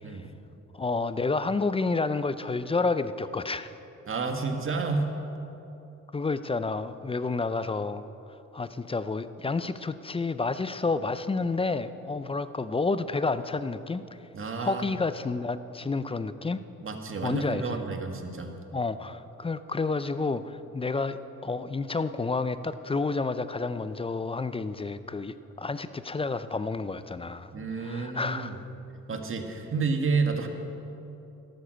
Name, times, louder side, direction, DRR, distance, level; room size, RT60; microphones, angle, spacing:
voice 1, 0.7-3.7 6.1-8.1 8.5-14.0 14.6-16.6 17.2-17.8 18.7-27.5 27.8-28.6, left 3 dB, 20° left, 13 dB, 0.5 m, -30 dB
voice 2, 4.1-5.2 14.3-14.9 16.8-18.5 27.5-28.6 29.1-30.5, right 4 dB, 45° right, 4 dB, 1.7 m, -30 dB
13.0 x 12.0 x 6.5 m, 2.9 s
cardioid pair, 90°, 30 cm